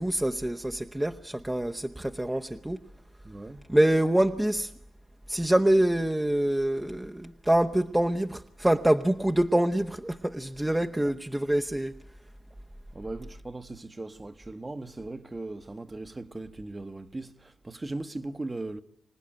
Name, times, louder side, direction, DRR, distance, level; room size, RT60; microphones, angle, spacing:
voice 1, 0.0-2.8 3.7-4.7 5.3-11.9, right 1 dB, 10° right, 1.0 m, -25 dB
voice 2, 3.2-3.7 12.9-18.8, right 2 dB, 25° right, 1.3 m, -38 dB
26.0 x 18.5 x 9.0 m
supercardioid pair, 55°, 0 cm